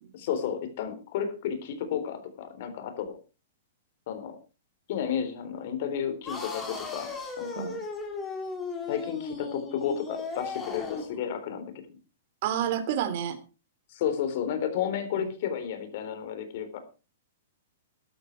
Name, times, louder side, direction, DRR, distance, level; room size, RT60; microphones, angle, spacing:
voice 1, 0.1-3.1 4.1-4.4 4.9-7.7 8.9-11.7 13.9-16.8, left 8 dB, 55° left, 9 dB, 3.8 m, -32 dB
sound 1, 6.2-11.2, left 4 dB, 15° left, 3.8 m, -36 dB
voice 2, 12.4-13.4 15.1-15.3, right 9 dB, 50° right, 9 dB, 3.1 m, -30 dB
13.5 x 12.5 x 4.6 m, 0.33 s
hypercardioid pair, 145°, 0 cm